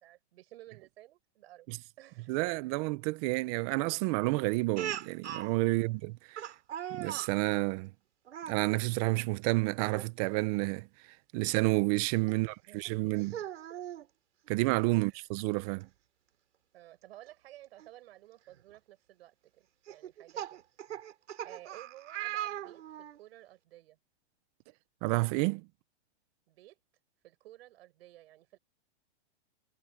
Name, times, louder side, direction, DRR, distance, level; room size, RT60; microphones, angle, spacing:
voice 1, 0.0-2.5 5.7-5.9 12.7-13.1 13.7-14.1 14.9-15.3 16.7-20.6 21.4-24.0 26.5-26.8 27.2-28.6, right 15 dB, 60° right, 7.3 m, -55 dB
voice 2, 2.3-6.4 6.9-7.9 8.5-10.9 11.3-13.4 14.5-15.9 25.0-25.7, right 23 dB, 35° right, 0.8 m, -30 dB
Speech, 4.8-5.5 6.4-7.3 8.3-8.6 9.8-10.1 10.5-10.6 12.3-12.4 13.2-14.1 15.4-15.5 15.8-15.9 17.8-17.9 18.5-18.8 19.9-23.2, right 11 dB, 85° right, 5.8 m, -39 dB
supercardioid pair, 155°, 34 cm